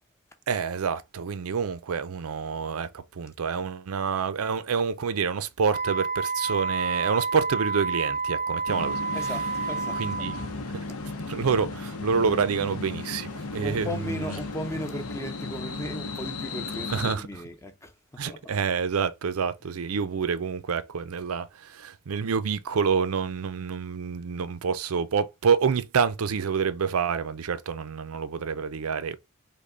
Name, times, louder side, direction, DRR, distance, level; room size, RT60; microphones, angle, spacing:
voice 1, 0.5-9.0 10.0-10.3 10.7-10.8 11.3-14.2 16.9-17.3 18.2-29.2, right 6 dB, 85° right, 0.5 m, -27 dB
Wind instrument woodwind instrument, 5.7-10.5, right 4 dB, 35° right, 0.6 m, -29 dB
sound 1, 8.7-17.2, left 3 dB, 85° left, 0.8 m, -35 dB
voice 2, 9.1-10.0 10.5-11.0 13.6-18.6, left 1 dB, 15° left, 0.6 m, -37 dB
5.2 x 2.2 x 3.8 m
head